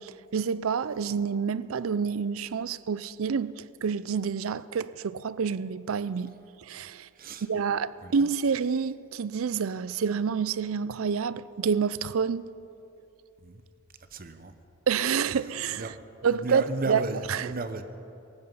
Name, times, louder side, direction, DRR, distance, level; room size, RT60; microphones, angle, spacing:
voice 1, 0.0-6.3 6.7-7.1 7.4-12.5 14.9-15.9 16.2-17.0 17.3-17.5, right 6 dB, 80° right, 0.5 m, -28 dB
voice 2, 14.1-14.5 15.8-16.0 16.3-17.8, right 2 dB, 45° right, 0.9 m, -34 dB
17.5 x 14.5 x 5.6 m
head